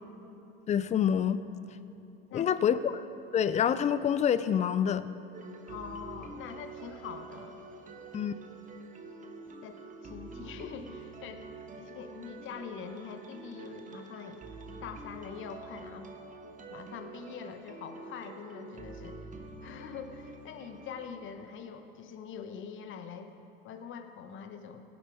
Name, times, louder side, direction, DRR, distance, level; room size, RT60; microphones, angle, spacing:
voice 1, 0.7-1.4 2.3-3.0 3.3-5.1 8.1-8.3, left 8 dB, 25° left, 14 dB, 0.5 m, -27 dB
sound 1, 5.3-21.1, right 3 dB, 25° right, 1.3 m, -47 dB
voice 2, 5.7-7.6 9.6-14.4 14.8-16.1 16.7-19.2 19.6-23.3 23.6-24.8, left 7 dB, 40° left, 8 dB, 1.1 m, -44 dB
17.5 x 11.0 x 3.5 m, 2.9 s
hypercardioid pair, 90°, 30 cm